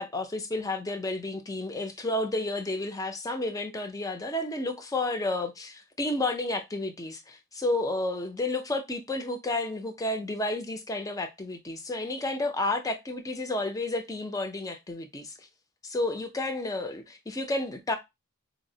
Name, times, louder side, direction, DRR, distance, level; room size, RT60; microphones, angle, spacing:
voice 1, 0.0-15.3 15.8-18.0, left 2 dB, 15° left, 0.4 m, -31 dB
4.2 x 2.0 x 2.6 m
head